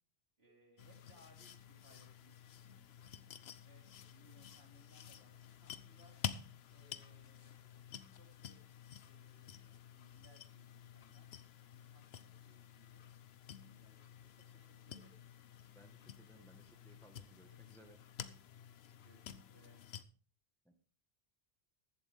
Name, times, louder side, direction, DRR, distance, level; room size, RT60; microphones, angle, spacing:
voice 1, 0.4-3.1 3.6-6.1 6.7-8.6 9.0-11.3 11.7-12.0 12.4-13.1 13.6-15.2 19.0-19.8, right 1 dB, 80° right, 0 dB, 3.9 m, -68 dB
sound 1, 0.8-20.0, left 8 dB, 80° left, 1.0 m, -51 dB
voice 2, 15.7-18.0 20.6-20.7, equal, 5° left, 5 dB, 1.4 m, -62 dB
15.0 x 12.0 x 3.5 m, 0.40 s
omnidirectional pair, 1.0 m